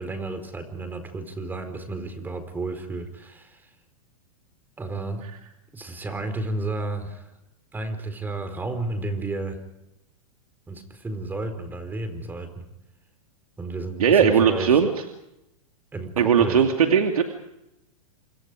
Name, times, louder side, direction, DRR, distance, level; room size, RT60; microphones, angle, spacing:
voice 1, 0.0-3.7 4.8-5.2 5.7-7.3 7.7-9.6 10.7-12.7 13.6-14.8 15.9-16.6, right 2 dB, 10° right, 9 dB, 4.4 m, -32 dB
voice 2, 14.0-14.9 16.2-17.2, right 7 dB, 85° right, 4 dB, 2.7 m, -18 dB
28.0 x 27.5 x 5.0 m, 0.88 s
hypercardioid pair, 135°, 18 cm